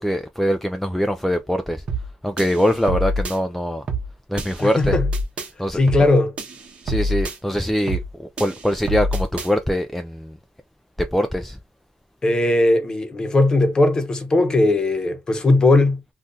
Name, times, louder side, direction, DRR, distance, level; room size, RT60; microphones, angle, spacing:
voice 1, 0.0-1.8 2.2-3.8 4.3-5.0 5.6-5.8 6.8-10.3 11.0-11.6, equal, 5° left, 0.3 m, -23 dB
sound 1, 1.9-2.1 2.4-3.4 3.9-4.1 4.4-5.5 5.9-6.1 6.4-7.4 7.9-8.1 8.4-9.5, equal, 40° right, 0.9 m, -26 dB
voice 2, 4.6-5.1 5.7-6.3 12.2-16.0, left 2 dB, 25° left, 0.9 m, -18 dB
2.6 x 2.4 x 3.7 m
cardioid pair, 115°, 3 cm